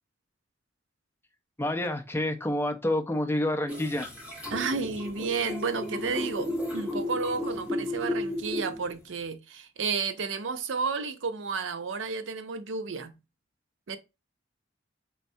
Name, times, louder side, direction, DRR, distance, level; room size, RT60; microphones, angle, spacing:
voice 1, 1.6-4.1, left 1 dB, 10° left, 0.5 m, -28 dB
sound 1, 3.7-9.0, left 1 dB, 10° right, 1.6 m, -33 dB
voice 2, 4.5-13.1 13.9-14.0, right 5 dB, 85° right, 0.5 m, -32 dB
4.4 x 3.4 x 2.6 m
head